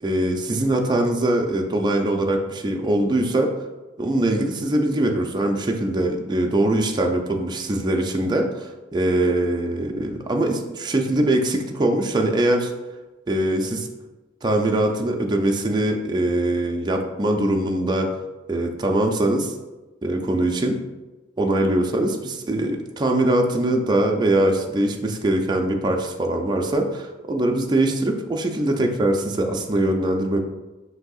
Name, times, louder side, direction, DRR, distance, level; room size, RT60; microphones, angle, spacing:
voice 1, 0.0-3.5 4.0-12.7 13.3-13.9 14.4-18.1 18.5-19.5 20.0-20.8 21.4-30.4, right 1 dB, 20° right, 2 dB, 0.4 m, -22 dB
6.2 x 2.7 x 2.4 m, 1.1 s
head